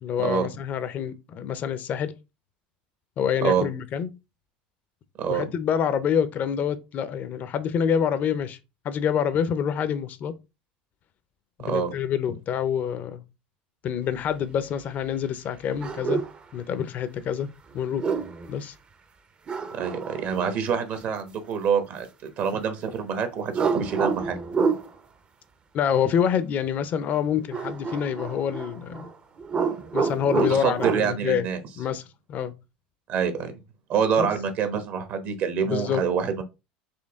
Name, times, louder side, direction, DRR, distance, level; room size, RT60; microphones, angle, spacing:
voice 1, 0.0-2.1 3.2-4.1 5.3-8.6 8.8-10.3 11.6-13.2 13.8-16.2 16.5-18.1 18.5-18.7 25.7-29.1 29.9-31.5 31.8-32.0 32.3-32.5 34.2-34.3 35.6-36.0, left 8 dB, 45° left, 0.5 m, -26 dB
sound 1, 15.8-16.4 17.8-18.5 19.5-20.6 23.5-24.9 27.5-29.1 29.4-31.0, right 5 dB, 30° right, 0.6 m, -28 dB
voice 2, 19.7-24.4 30.3-31.6 33.1-33.5 33.9-36.4, right 7 dB, 55° right, 1.0 m, -26 dB
4.5 x 2.8 x 3.4 m
supercardioid pair, 95°, 4 cm